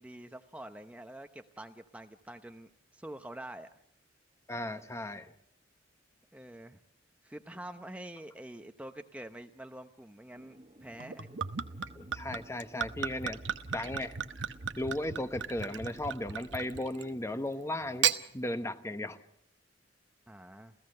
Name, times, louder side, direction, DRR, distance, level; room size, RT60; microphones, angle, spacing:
voice 1, 0.0-3.7 6.3-6.8 7.2-11.4 20.3-20.7, right 1 dB, 5° right, 6 dB, 0.8 m, -46 dB
voice 2, 4.5-5.3 11.9-13.4 13.7-14.2 14.8-18.1 18.3-19.2, left 1 dB, 15° left, 9 dB, 1.0 m, -36 dB
sound 1, 10.3-16.8, right 1 dB, 30° right, 1.6 m, -57 dB
Gurgling / Chink clink / Liquid, 11.0-17.2 17.8-18.2, right 8 dB, 70° right, 1.0 m, -35 dB
29.0 x 16.0 x 6.6 m, 0.69 s
head